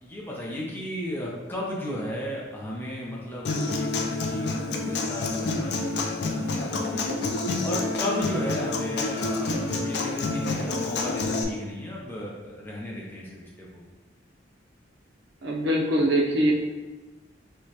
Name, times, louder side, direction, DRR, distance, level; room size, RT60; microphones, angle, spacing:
voice 1, 0.0-13.8, left 1 dB, 10° left, -5 dB, 0.5 m, -35 dB
Human voice / Acoustic guitar, 3.4-11.4, left 3 dB, 60° left, 0.4 m, -28 dB
voice 2, 15.4-16.5, right 1 dB, 65° right, -1 dB, 0.6 m, -23 dB
4.9 x 2.2 x 2.8 m, 1.2 s
head